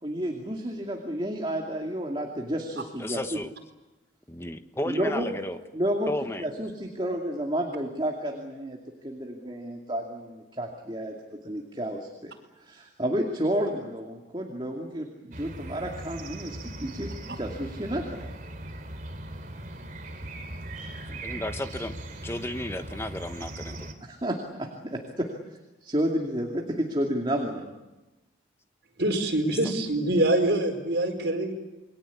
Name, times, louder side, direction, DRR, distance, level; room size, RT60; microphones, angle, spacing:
voice 1, 0.0-3.4 4.8-5.2 5.7-6.1 6.4-8.8 9.0-12.3 12.6-18.3 24.0-25.3 25.8-27.7, equal, 25° right, 1 dB, 2.6 m, -31 dB
voice 2, 3.0-3.5 4.3-5.6 6.1-6.4 21.1-22.0 22.2-23.9, left 1 dB, 15° left, 8 dB, 1.3 m, -33 dB
sound 1, 15.3-23.9, right 1 dB, 45° right, 3.0 m, -39 dB
voice 3, 29.0-31.5, right 1 dB, 70° right, 3 dB, 5.1 m, -24 dB
28.5 x 22.5 x 8.5 m, 1.1 s
head